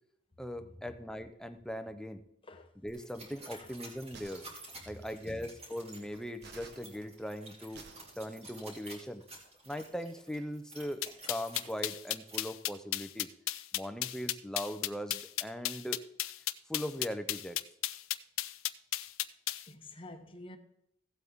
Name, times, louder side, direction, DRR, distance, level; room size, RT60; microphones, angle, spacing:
voice 1, 0.4-2.2 2.8-4.4 4.9-7.9 8.2-9.2 9.7-11.0 11.3-13.3 13.7-16.0 16.7-17.6, equal, 5° left, 0.6 m, -40 dB
sound 1, 2.9-12.4, right 2 dB, 30° right, 2.7 m, -51 dB
voice 2, 3.4-3.7 4.9-5.5 19.7-20.6, left 1 dB, 25° left, 1.0 m, -49 dB
sound 2, 4.1-5.2 6.4-8.7, right 4 dB, 55° right, 1.1 m, -54 dB
sound 3, 11.0-19.6, left 15 dB, 80° left, 0.5 m, -34 dB
16.0 x 8.1 x 3.6 m
head